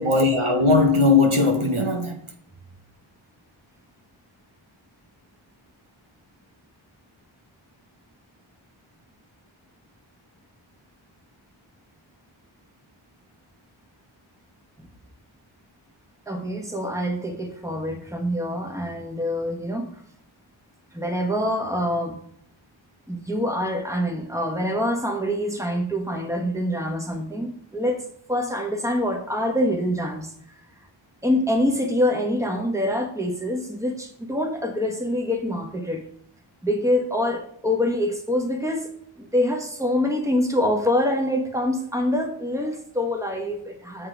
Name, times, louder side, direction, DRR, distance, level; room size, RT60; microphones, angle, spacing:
voice 1, 0.0-2.2, left 3 dB, 75° right, 1.2 m, -19 dB
voice 2, 16.3-20.0 20.9-22.2 23.1-30.3 31.2-36.0 36.6-38.9 39.2-44.1, left 1 dB, 5° right, 1.3 m, -25 dB
6.8 x 5.9 x 4.6 m
wide cardioid pair, 40°, 50 cm